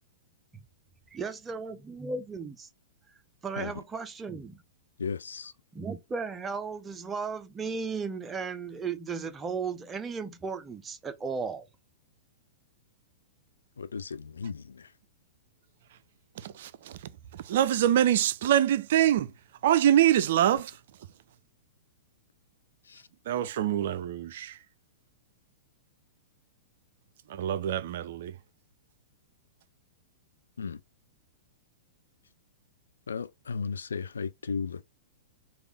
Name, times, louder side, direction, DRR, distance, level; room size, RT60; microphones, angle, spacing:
voice 1, 1.1-2.7 3.4-4.6 5.7-11.7, right 5 dB, 15° right, 0.6 m, -35 dB
voice 2, 5.0-5.5 13.8-14.9 22.9-23.0 30.6-30.8 33.1-34.8, left 5 dB, 75° left, 0.3 m, -35 dB
voice 3, 16.3-21.1 23.2-24.7 27.3-28.4, right 11 dB, 60° right, 0.4 m, -25 dB
3.4 x 2.4 x 3.3 m
figure-of-eight pair, 105°, 0 cm